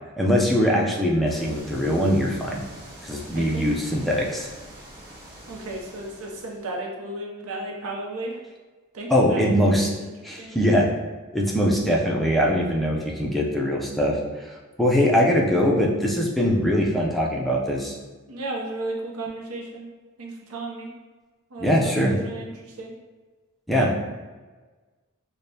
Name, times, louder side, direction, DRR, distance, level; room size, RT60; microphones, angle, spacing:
voice 1, 0.2-2.6 3.0-4.5 9.1-9.9 10.2-10.9 11.3-18.0 21.6-22.2 23.7-24.0, equal, ahead, -3 dB, 0.4 m, -22 dB
sound 1, 1.3-6.6, right 1 dB, 45° right, 1.4 m, -44 dB
voice 2, 3.4-3.7 5.5-8.4 8.9-9.8 10.4-10.5 18.3-19.9 20.2-20.9 21.5-22.9, right 2 dB, 75° right, 0 dB, 0.6 m, -34 dB
5.0 x 2.1 x 2.7 m, 1.3 s
head